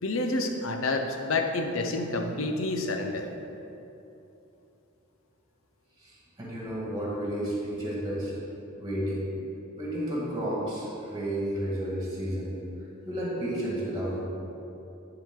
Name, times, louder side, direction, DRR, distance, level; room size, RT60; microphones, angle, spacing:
voice 1, 0.0-3.3, left 2 dB, 80° left, 4 dB, 0.7 m, -29 dB
voice 2, 6.0-8.3 8.8-9.2 9.8-12.5 13.0-14.2, right 1 dB, 20° right, -5 dB, 1.6 m, -32 dB
10.5 x 4.8 x 3.7 m, 2.8 s
head